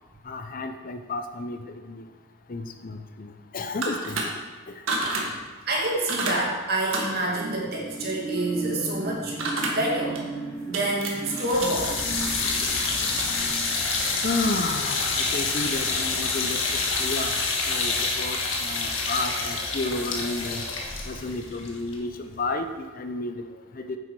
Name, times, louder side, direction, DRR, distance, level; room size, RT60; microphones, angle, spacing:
voice 1, 0.2-2.0 2.5-4.3 4.7-4.8 14.2-20.7 21.0-23.4 23.7-24.0, left 2 dB, 40° left, 7 dB, 0.6 m, -32 dB
sound 1, 3.7-4.2 4.9-5.2 6.1-6.4 6.9-7.2 9.4-9.7 10.1-10.2 10.7-11.7 12.0-15.1, right 3 dB, 75° right, 1.7 m, -31 dB
voice 2, 5.7-9.4 9.6-10.2 10.7-11.9, right 1 dB, 50° right, -3 dB, 2.3 m, -27 dB
sound 2, 7.1-14.9 15.3-15.4, right 3 dB, 20° right, 3.1 m, -36 dB
sound 3, 11.4-22.5, left 4 dB, 75° left, 1.5 m, -27 dB
9.5 x 7.7 x 4.7 m, 1.3 s
head